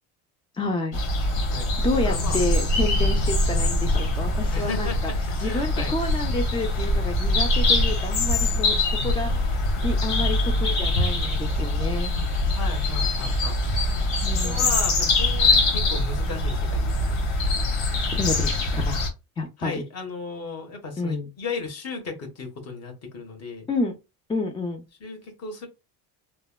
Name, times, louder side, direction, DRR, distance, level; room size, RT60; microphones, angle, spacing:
voice 1, 0.5-1.0 1.8-5.1 5.4-12.1 14.2-14.7 18.0-19.1 19.4-19.7 21.0-21.3 23.7-23.9 24.3-24.9, left 2 dB, 15° left, 0.4 m, -29 dB
sound 1, 0.9-19.1, left 2 dB, 80° left, 1.4 m, -23 dB
voice 2, 2.0-2.4 2.7-2.9 4.5-5.9 9.1-10.3 12.5-13.6 14.1-17.2 19.6-23.7 25.0-25.7, left 4 dB, 40° left, 1.3 m, -35 dB
3.3 x 2.2 x 2.2 m
supercardioid pair, 110°, 40 cm